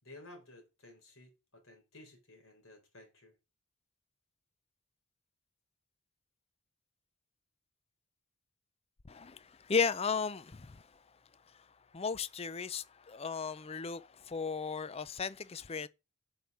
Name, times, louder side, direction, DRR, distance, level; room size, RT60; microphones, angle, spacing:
voice 1, 0.0-3.3, left 2 dB, 65° left, 4.0 m, -55 dB
voice 2, 9.1-10.8 11.9-15.9, left 5 dB, 25° left, 0.5 m, -35 dB
8.0 x 5.5 x 7.2 m
head